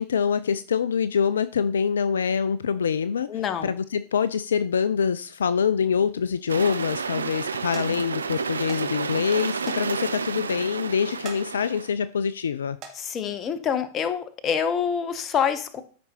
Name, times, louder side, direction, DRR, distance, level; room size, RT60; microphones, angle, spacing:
voice 1, 0.0-12.8, left 7 dB, 70° left, 15 dB, 0.3 m, -25 dB
voice 2, 3.3-3.7 13.0-15.8, left 7 dB, 30° left, 12 dB, 0.8 m, -26 dB
sound 1, 6.5-11.9, right 5 dB, 75° right, 0.5 m, -30 dB
sound 2, 7.7-7.9 8.7-8.8 9.1-9.2 9.6-9.8 10.2-10.3 11.1-11.4 11.9-12.2 12.7-13.0 13.9-14.1 14.6-14.7, right 6 dB, 35° right, 2.0 m, -41 dB
13.5 x 5.1 x 2.9 m, 0.42 s
figure-of-eight pair, 90°, 0 cm